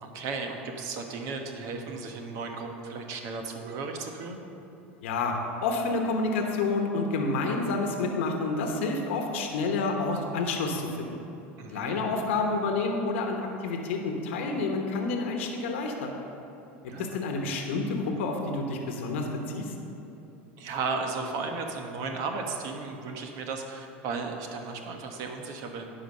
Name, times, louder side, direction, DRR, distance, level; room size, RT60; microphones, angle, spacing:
voice 1, 0.0-4.4 11.6-12.0 16.9-17.1 20.6-25.9, right 4 dB, 60° right, 4 dB, 1.2 m, -35 dB
voice 2, 5.0-11.2 11.7-16.1 17.0-19.7, left 3 dB, 80° left, 2 dB, 1.0 m, -29 dB
10.5 x 4.9 x 6.5 m, 2.9 s
hypercardioid pair, 95°, 7 cm